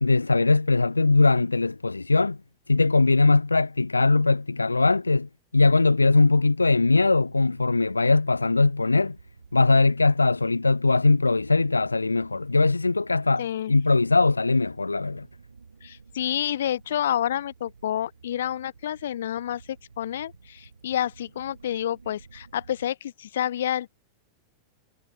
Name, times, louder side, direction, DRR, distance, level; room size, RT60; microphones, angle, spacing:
voice 1, 0.0-2.4 2.7-9.2 9.5-15.2, left 3 dB, 80° left, 0.4 m, -21 dB
sound 1, 6.7-22.9, right 5 dB, 75° right, 6.3 m, -52 dB
voice 2, 13.4-13.8 15.8-23.9, left 11 dB, 60° left, 0.9 m, -29 dB
figure-of-eight pair, 90°, 0 cm